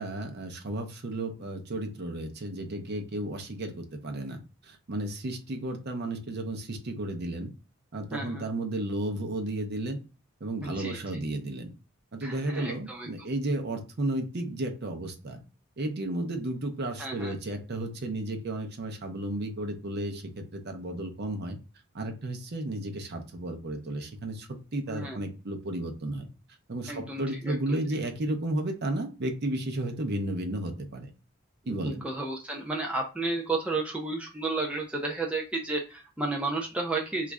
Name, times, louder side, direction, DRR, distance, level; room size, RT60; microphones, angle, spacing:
voice 1, 0.0-7.5 7.9-10.0 10.4-11.7 12.1-15.4 15.8-21.6 21.9-26.3 26.7-31.1 31.7-32.0, right 1 dB, 45° right, 4 dB, 0.6 m, -33 dB
voice 2, 8.1-8.4 10.6-11.0 12.2-13.1 17.0-17.3 24.9-25.2 26.9-27.8 31.7-37.3, right 3 dB, 5° right, 0 dB, 0.3 m, -32 dB
3.1 x 2.4 x 3.4 m, 0.32 s
head